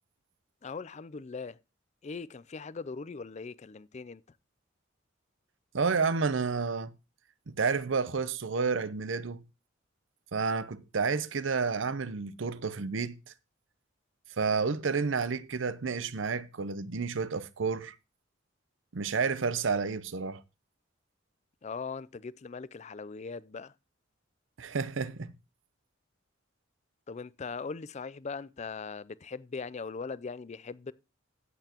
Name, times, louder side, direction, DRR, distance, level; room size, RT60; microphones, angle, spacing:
voice 1, 0.6-1.6 2.0-4.2 21.6-23.7 27.1-30.9, left 4 dB, 35° left, 0.4 m, -40 dB
voice 2, 5.7-6.9 7.5-9.4 10.3-13.3 14.4-17.9 18.9-20.4 24.6-25.3, right 5 dB, 70° right, 0.7 m, -30 dB
15.5 x 8.0 x 2.9 m
head